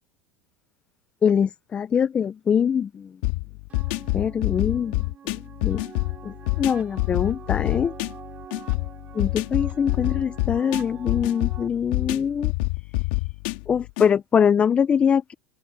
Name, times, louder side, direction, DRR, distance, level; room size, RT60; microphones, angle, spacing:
voice 1, 1.2-3.1 4.1-5.8 6.2-7.9 9.1-12.5 13.7-15.3, left 7 dB, 25° left, 0.7 m, -23 dB
sound 1, 3.2-14.1, left 24 dB, 70° left, 2.3 m, -27 dB
sound 2, 3.7-11.7, right 8 dB, 30° right, 3.3 m, -45 dB
open air
supercardioid pair, 125°, 5 cm